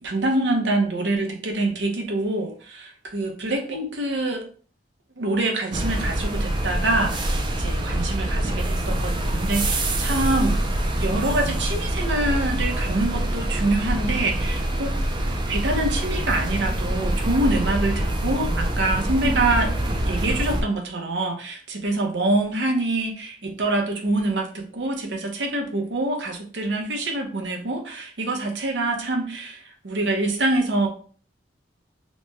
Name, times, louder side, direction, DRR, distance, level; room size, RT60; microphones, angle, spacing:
voice 1, 0.0-4.4 5.2-10.6 11.0-14.9 15.5-19.7 20.0-30.9, right 2 dB, 85° right, 3 dB, 0.7 m, -25 dB
sound 1, 5.7-20.6, right 1 dB, 25° right, 0.4 m, -25 dB
3.1 x 2.2 x 3.1 m, 0.43 s
head